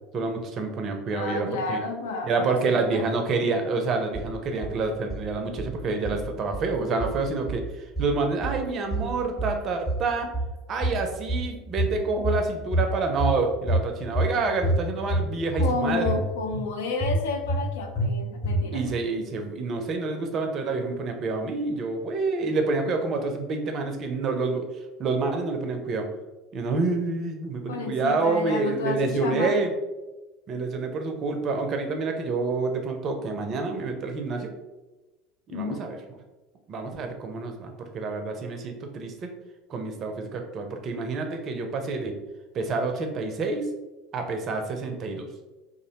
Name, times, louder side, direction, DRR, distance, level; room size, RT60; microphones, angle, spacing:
voice 1, 0.1-1.8 2.2-7.6 8.0-10.3 10.7-16.1 18.7-24.6 25.0-26.1 26.5-29.7 30.5-34.6 35.5-36.0 36.7-39.3 39.7-42.1 42.5-43.7 44.1-45.3, right 3 dB, 40° right, 5 dB, 0.4 m, -28 dB
voice 2, 1.1-3.0 15.6-18.8 27.7-29.6 35.5-35.8, left 4 dB, 70° left, 4 dB, 0.4 m, -31 dB
sound 1, 4.1-4.8 5.1-5.7 6.1-6.7 7.0-7.7 8.0-8.6 8.9-9.6 9.9-10.6 10.8-11.5 11.8-12.5 12.7-13.4 13.7-14.3 14.6-15.3 15.6-16.2 16.5-16.6 17.0-17.7 18.0-18.1 18.4-18.9, right 1 dB, 5° left, 0.9 m, -27 dB
2.4 x 2.0 x 2.7 m, 1.1 s
hypercardioid pair, 75°, 0 cm